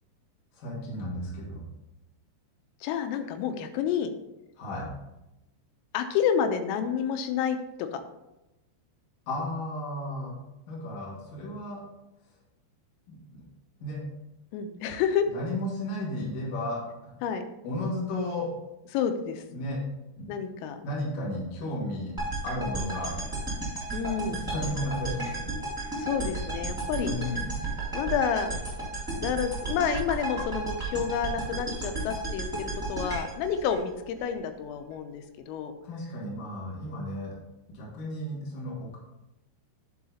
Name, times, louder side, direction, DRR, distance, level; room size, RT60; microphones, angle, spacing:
voice 1, 0.5-1.6 4.6-4.9 9.3-10.4 10.7-11.8 13.1-13.4 13.8-14.0 15.3-17.1 17.6-18.5 19.5-19.8 20.2-20.3 20.8-22.1 22.4-23.2 24.2-25.6 27.0-27.5 35.8-37.3 37.7-39.0, left 1 dB, 50° left, -5 dB, 3.4 m, -34 dB
voice 2, 2.8-4.1 5.9-8.0 14.5-15.3 17.2-17.5 18.9-19.4 20.3-20.8 23.9-24.4 26.0-27.1 27.9-28.5 29.2-35.8, left 7 dB, 90° left, 7 dB, 3.4 m, -29 dB
sound 1, 22.2-34.3, right 2 dB, ahead, 1.5 m, -33 dB
10.5 x 4.8 x 4.1 m, 0.93 s
omnidirectional pair, 5.9 m